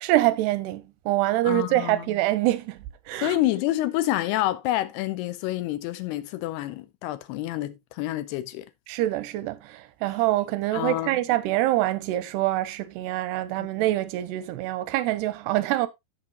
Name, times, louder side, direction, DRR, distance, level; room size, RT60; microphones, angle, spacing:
voice 1, 0.0-2.8 3.1-3.4 8.9-15.9, right 16 dB, 85° right, 2.8 m, -25 dB
voice 2, 1.4-2.0 3.2-8.7 10.7-11.2, left 15 dB, 85° left, 2.7 m, -28 dB
14.5 x 5.1 x 2.8 m
omnidirectional pair, 4.6 m